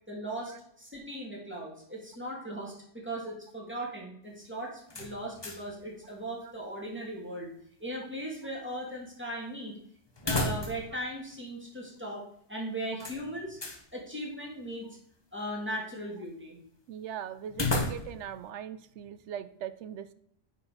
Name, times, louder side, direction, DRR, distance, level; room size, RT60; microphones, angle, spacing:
voice 1, 0.1-7.5 7.8-9.7 10.2-13.6 13.9-14.9 15.3-16.6, right 1 dB, 10° right, -3 dB, 2.4 m, -38 dB
sound 1, 4.9-5.8 6.1-6.2 10.2-11.0 11.3-11.4 13.0-13.8 17.5-18.3, left 2 dB, 25° left, 0.9 m, -33 dB
voice 2, 16.9-20.1, right 9 dB, 75° right, 14 dB, 0.9 m, -40 dB
9.6 x 4.6 x 4.1 m, 0.69 s
omnidirectional pair, 1.2 m